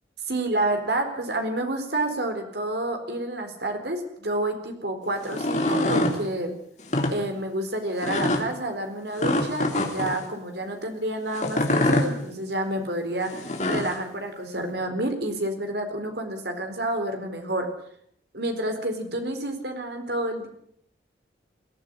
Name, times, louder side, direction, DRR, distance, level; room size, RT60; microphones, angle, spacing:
voice 1, 0.3-6.5 7.1-17.7 18.3-20.5, right 1 dB, 65° right, 6 dB, 4.2 m, -29 dB
sound 1, 5.2-6.2 6.8-7.1 8.0-8.4 9.2-10.2 11.3-12.1 13.3-13.9, left 1 dB, 40° left, 3.2 m, -24 dB
22.0 x 15.0 x 9.0 m, 0.69 s
head